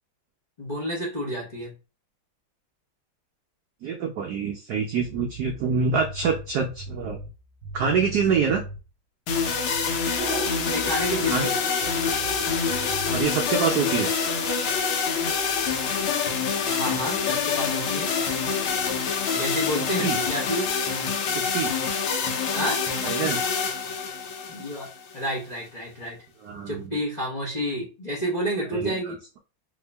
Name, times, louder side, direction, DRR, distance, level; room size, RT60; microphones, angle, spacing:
voice 1, 0.6-1.7 10.7-11.6 16.7-18.1 19.3-20.7 22.5-22.8 24.5-24.9 25.1-26.2 26.7-29.2, equal, 45° left, -3 dB, 0.5 m, -30 dB
voice 2, 3.8-7.2 7.7-8.6 11.3-11.5 13.1-14.1 20.0-20.2 21.3-21.7 23.0-23.5 26.4-27.0 28.7-29.4, right 6 dB, 80° right, 2 dB, 0.8 m, -26 dB
sound 1, 5.0-8.9 9.3-11.5 11.8-13.2, right 3 dB, 45° right, 1.3 m, -40 dB
sound 2, 9.3-25.3, left 5 dB, 75° left, 1.7 m, -26 dB
sound 3, 10.2-19.2, right 2 dB, 5° right, 0.9 m, -41 dB
3.6 x 2.6 x 3.3 m, 0.32 s
omnidirectional pair, 2.4 m